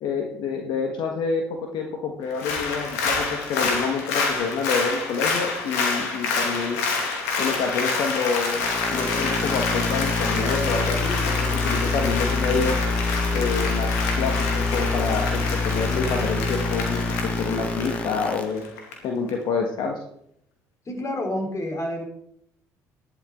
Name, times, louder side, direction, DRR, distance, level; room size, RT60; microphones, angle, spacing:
voice 1, 0.0-6.8 7.4-12.8 13.3-18.6 19.0-20.0, left 5 dB, 70° left, 2 dB, 1.7 m, -28 dB
Applause, 2.3-18.9 19.3-19.4, left 4 dB, 90° left, 2.4 m, -28 dB
sound 1, 8.5-18.4, left 3 dB, 15° left, 1.4 m, -26 dB
voice 2, 20.9-22.0, left 1 dB, 40° left, 3 dB, 4.1 m, -28 dB
13.0 x 11.5 x 3.9 m, 0.72 s
hypercardioid pair, 60°, 8 cm